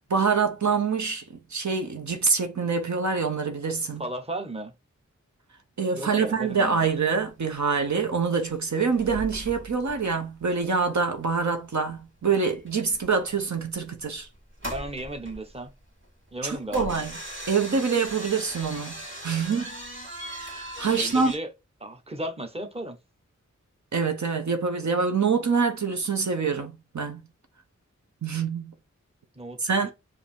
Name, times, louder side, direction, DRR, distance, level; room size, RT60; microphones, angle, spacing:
voice 1, 0.1-1.2 1.5-4.0 5.8-14.3 16.4-17.1 17.5-19.0 19.2-19.7 20.2-21.3 23.9-27.2 28.2-28.7 29.6-29.9, right 5 dB, 70° right, 0.8 m, -25 dB
voice 2, 4.0-4.7 6.0-6.9 14.6-15.7 16.3-17.0 20.9-21.5 21.8-23.0 29.4-29.9, right 1 dB, 20° right, 1.0 m, -35 dB
sound 1, 6.5-6.6 6.9-7.3 7.6-7.7 8.0-8.5 8.8-11.6 11.9-12.0 12.5-21.4, right 1 dB, 40° right, 2.1 m, -39 dB
4.9 x 2.6 x 3.5 m
wide cardioid pair, 50°, 30 cm